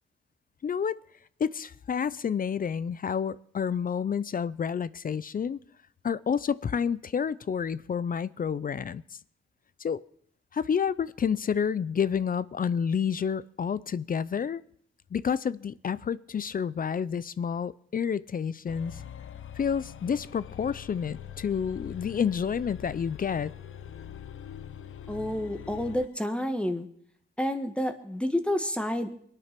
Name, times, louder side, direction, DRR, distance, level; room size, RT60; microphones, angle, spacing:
voice 1, 0.6-1.0 1.4-5.6 6.0-9.0 9.8-10.0 10.5-14.6 15.1-19.0 19.6-23.5, left 7 dB, 45° left, 0.5 m, -29 dB
sound 1, 18.7-26.2, left 9 dB, 75° left, 0.8 m, -43 dB
voice 2, 25.1-26.9 27.4-29.1, left 1 dB, 5° left, 1.4 m, -29 dB
22.5 x 9.1 x 5.9 m
cardioid pair, 85°, 21 cm